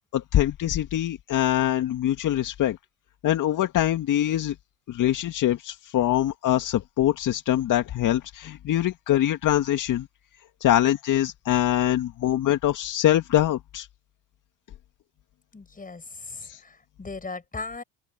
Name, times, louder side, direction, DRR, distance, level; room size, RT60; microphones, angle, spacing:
voice 1, 0.1-2.8 3.2-4.6 4.9-10.1 10.6-13.9 16.4-16.6, left 12 dB, 50° left, 2.2 m, -23 dB
voice 2, 15.5-17.8, left 3 dB, 20° left, 7.5 m, -38 dB
open air
hypercardioid pair, 65°, 38 cm